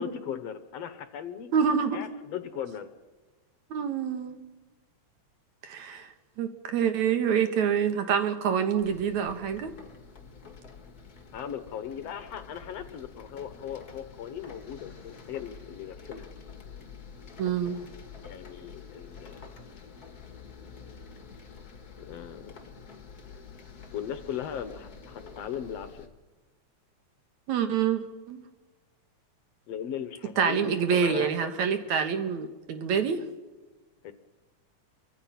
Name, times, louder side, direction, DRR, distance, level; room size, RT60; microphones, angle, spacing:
voice 1, 0.0-1.5 1.9-2.9 11.3-16.3 18.2-19.4 22.0-22.5 23.9-26.1 29.7-32.0 34.0-34.1, left 8 dB, 65° left, 10 dB, 1.9 m, -38 dB
voice 2, 1.5-2.0 3.7-4.4 5.6-6.1 6.4-9.7 17.4-17.8 27.5-28.4 30.4-33.2, right 7 dB, 70° right, 7 dB, 2.7 m, -26 dB
sound 1, 8.8-26.1, left 5 dB, 35° left, 2.1 m, -48 dB
29.0 x 24.0 x 5.8 m, 1.2 s
omnidirectional pair, 3.5 m